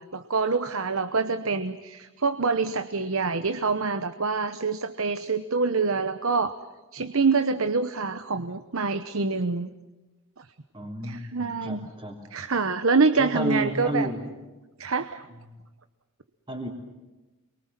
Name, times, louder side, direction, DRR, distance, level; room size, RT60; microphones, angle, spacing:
voice 1, 0.0-6.5 6.9-9.7 10.4-10.5 11.0-11.9 12.3-14.1 14.8-15.3, right 4 dB, 70° right, 10 dB, 1.0 m, -26 dB
voice 2, 10.7-12.2 13.2-14.2 16.5-16.7, right 1 dB, 20° right, -4 dB, 3.4 m, -31 dB
29.0 x 23.0 x 7.6 m, 1.2 s
head